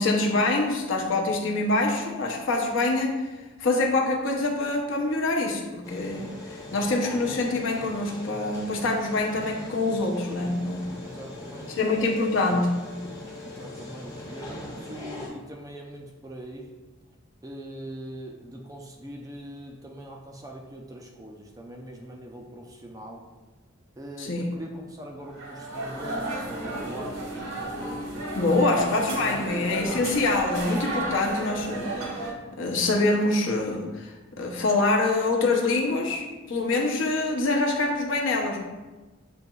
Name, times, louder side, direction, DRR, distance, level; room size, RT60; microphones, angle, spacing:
voice 1, 0.0-3.2 3.6-11.0 11.7-12.8 24.2-24.5 28.4-38.6, left 2 dB, 60° left, 0 dB, 0.7 m, -25 dB
sound 1, 5.8-15.3, left 2 dB, 15° left, 0.8 m, -40 dB
voice 2, 10.2-10.5 11.0-11.7 13.4-16.8 17.4-23.2 24.0-27.5 27.8-28.7 29.1-29.5, right 1 dB, 15° right, 0 dB, 0.4 m, -42 dB
sound 2, 25.3-32.3, right 1 dB, 75° right, 1.0 m, -33 dB
7.9 x 2.9 x 2.3 m, 1.2 s
head